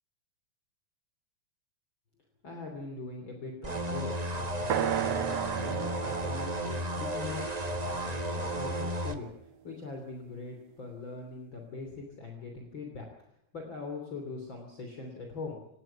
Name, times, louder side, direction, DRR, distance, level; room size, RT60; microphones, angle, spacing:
voice 1, 2.4-13.1 13.5-15.7, left 3 dB, 40° left, 2 dB, 3.7 m, -42 dB
sound 1, 3.6-9.2, right 1 dB, 30° right, 0.7 m, -33 dB
sound 2, 4.7-8.6, right 10 dB, 60° right, 2.0 m, -35 dB
28.5 x 18.0 x 5.9 m, 0.77 s
omnidirectional pair, 3.6 m